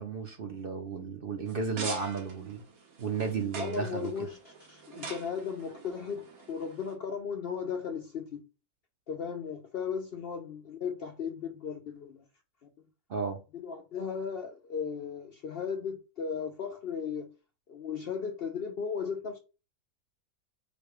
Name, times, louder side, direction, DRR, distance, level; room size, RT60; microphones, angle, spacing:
voice 1, 0.0-2.6 3.0-4.3 13.1-13.4, right 5 dB, 50° right, 0.8 m, -33 dB
sound 1, 1.4-6.9, right 4 dB, 75° right, 1.6 m, -44 dB
voice 2, 3.6-8.4 9.1-12.2 13.5-17.3 17.7-19.4, left 6 dB, 60° left, 0.6 m, -36 dB
5.0 x 2.2 x 4.8 m
omnidirectional pair, 1.5 m